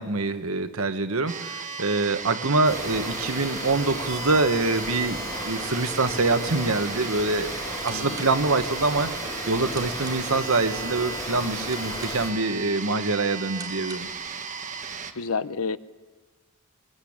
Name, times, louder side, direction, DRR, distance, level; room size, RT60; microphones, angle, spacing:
voice 1, 0.0-7.5 7.8-9.1 9.5-14.1, right 3 dB, 85° right, 9 dB, 1.4 m, -25 dB
sound 1, 1.3-15.1, right 5 dB, 35° right, 1.3 m, -36 dB
sound 2, 2.6-12.3, left 1 dB, 15° left, 5.2 m, -35 dB
sound 3, 7.6-14.3, right 3 dB, 20° right, 2.9 m, -48 dB
voice 2, 7.9-8.3 15.1-15.8, left 4 dB, 85° left, 14 dB, 0.8 m, -30 dB
22.0 x 21.5 x 8.8 m, 1.3 s
head